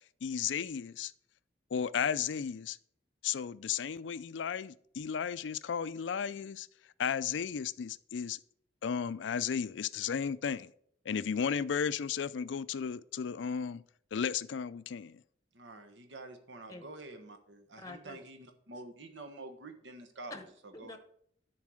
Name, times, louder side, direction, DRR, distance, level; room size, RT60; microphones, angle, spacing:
voice 1, 0.2-1.1 1.7-2.8 3.2-6.7 7.0-8.4 8.8-10.7 11.1-13.8 14.1-15.2, left 7 dB, 75° left, 0.4 m, -34 dB
voice 2, 15.5-20.3 20.8-21.0, right 2 dB, 75° right, 1.2 m, -48 dB
voice 3, 17.8-18.2 20.3-21.0, left 2 dB, 20° left, 0.8 m, -47 dB
10.5 x 4.7 x 6.3 m
head